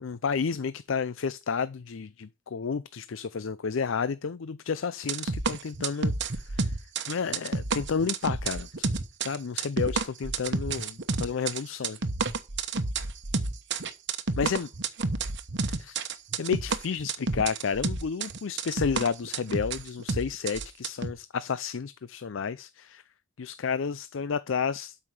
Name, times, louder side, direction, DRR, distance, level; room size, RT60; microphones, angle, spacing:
voice 1, 0.0-6.7 7.1-8.9 9.2-12.0 14.4-14.7 15.7-16.0 16.4-23.0 23.4-25.0, left 6 dB, 65° left, 0.5 m, -31 dB
sound 1, 5.1-21.1, right 4 dB, 55° right, 1.0 m, -30 dB
12.0 x 5.6 x 4.8 m
head